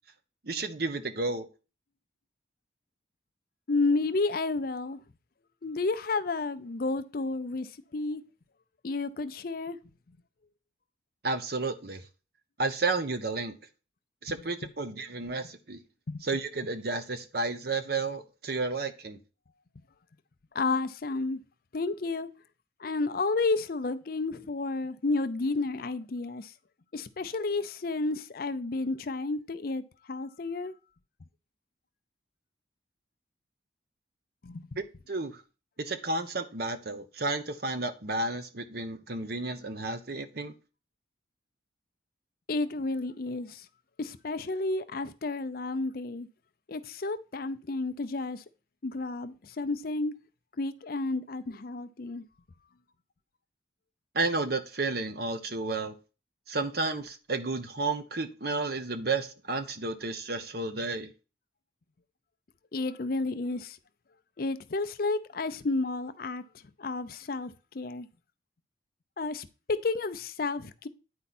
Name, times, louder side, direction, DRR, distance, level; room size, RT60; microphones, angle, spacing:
voice 1, 0.4-1.5 11.2-12.0 12.6-13.5 14.2-15.8 16.2-19.2 34.8-35.4 35.8-40.5 54.1-55.9 56.5-61.1, right 3 dB, 55° right, 0.9 m, -32 dB
voice 2, 3.7-5.0 5.6-8.2 8.8-9.8 16.1-16.3 20.5-21.4 21.7-22.3 22.8-26.5 26.9-29.8 30.1-30.7 34.4-34.7 42.5-43.7 44.0-46.3 46.7-48.4 48.8-50.1 50.6-52.2 62.7-63.8 64.4-66.4 66.8-68.1 69.2-70.9, left 3 dB, 50° left, 0.5 m, -31 dB
9.5 x 4.4 x 4.2 m
head